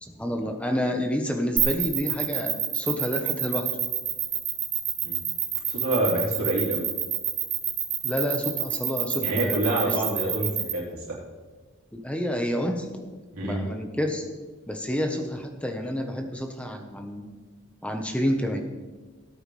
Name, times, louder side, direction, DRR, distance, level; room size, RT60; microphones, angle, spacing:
voice 1, 0.0-3.7 8.0-10.3 11.9-12.9 13.4-14.2 14.7-17.3 17.8-18.6, equal, 5° left, 4 dB, 1.1 m, -29 dB
sound 1, 1.6-10.7, right 9 dB, 50° right, 2.4 m, -27 dB
voice 2, 5.7-6.9 9.2-11.0 13.3-13.7, right 1 dB, 85° right, -5 dB, 3.7 m, -27 dB
18.0 x 8.9 x 3.4 m, 1.3 s
head